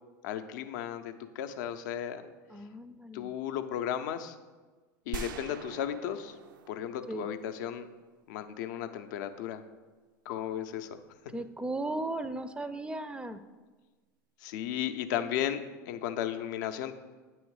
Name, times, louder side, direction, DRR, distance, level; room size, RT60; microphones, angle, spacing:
voice 1, 0.2-2.3 3.1-4.3 5.1-6.3 6.7-7.9 8.3-9.6 10.3-11.0 14.4-16.9, left 10 dB, 65° left, 9 dB, 0.5 m, -35 dB
voice 2, 2.5-3.4 7.1-7.3 11.3-13.4, right 2 dB, 10° right, 12 dB, 0.4 m, -36 dB
sound 1, 5.1-8.0, right 7 dB, 75° right, 0.4 m, -43 dB
8.9 x 3.1 x 4.7 m, 1.3 s
hypercardioid pair, 85°, 11 cm